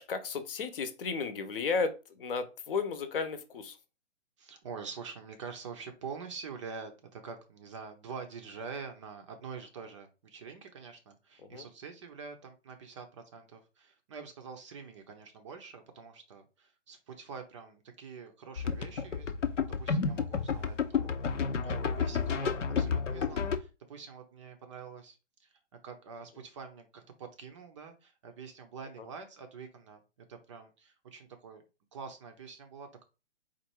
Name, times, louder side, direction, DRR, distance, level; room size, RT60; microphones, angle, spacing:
voice 1, 0.0-3.8 11.4-11.6, left 5 dB, 50° left, 10 dB, 0.8 m, -34 dB
voice 2, 4.4-31.6 31.9-33.0, right 5 dB, 25° right, 5 dB, 0.5 m, -46 dB
sound 1, 18.6-23.6, left 6 dB, 75° left, 0.8 m, -31 dB
4.3 x 2.5 x 4.5 m, 0.30 s
figure-of-eight pair, 130°, 37 cm